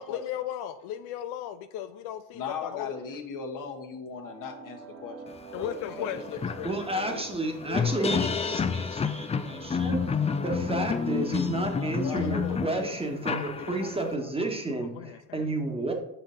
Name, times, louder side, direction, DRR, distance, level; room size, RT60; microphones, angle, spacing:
voice 1, 0.0-2.9 5.5-6.4 14.7-15.5, left 11 dB, 70° left, 10 dB, 0.5 m, -36 dB
voice 2, 2.3-5.2 5.5-6.7 7.0-7.2 7.7-8.3 11.7-12.9 13.2-14.3, left 5 dB, 50° left, 4 dB, 1.3 m, -39 dB
sound 1, 4.2-15.2, right 3 dB, 40° right, 1.4 m, -47 dB
sound 2, 5.6-5.7 6.0-14.1, left 6 dB, 15° left, 0.4 m, -29 dB
voice 3, 6.6-15.9, right 2 dB, 15° right, 3 dB, 1.4 m, -31 dB
5.7 x 5.2 x 3.9 m, 0.77 s
supercardioid pair, 70°, 40 cm